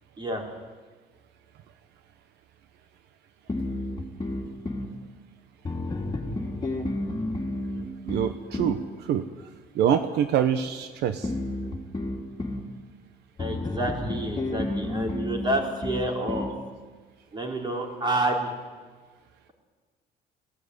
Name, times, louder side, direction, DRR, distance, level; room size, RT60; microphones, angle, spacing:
voice 1, 0.2-0.5 13.4-16.5 17.3-18.5, right 1 dB, 25° right, 0 dB, 4.5 m, -29 dB
sound 1, 3.5-4.9 5.6-8.8 11.2-12.7 13.4-16.6, left 1 dB, 25° left, 2.9 m, -31 dB
voice 2, 8.0-9.2 9.7-11.3, right 9 dB, 80° right, 9 dB, 1.0 m, -25 dB
16.5 x 16.0 x 9.7 m, 1.4 s
cardioid pair, 110°, 17 cm